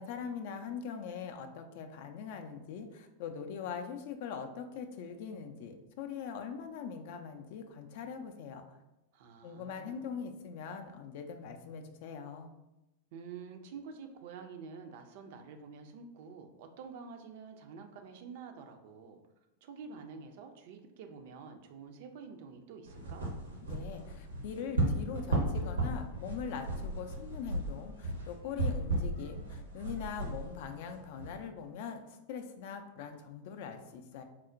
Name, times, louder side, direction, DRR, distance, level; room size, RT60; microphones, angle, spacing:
voice 1, 0.0-8.6 9.4-12.5 23.6-34.2, left 6 dB, 50° left, 6 dB, 0.3 m, -42 dB
voice 2, 9.1-10.1 13.1-19.2 19.6-23.3, right 5 dB, 50° right, 5 dB, 0.4 m, -48 dB
sound 1, 22.9-31.3, right 2 dB, 80° right, 0.7 m, -35 dB
4.2 x 2.1 x 2.5 m, 0.94 s
figure-of-eight pair, 90°, 0 cm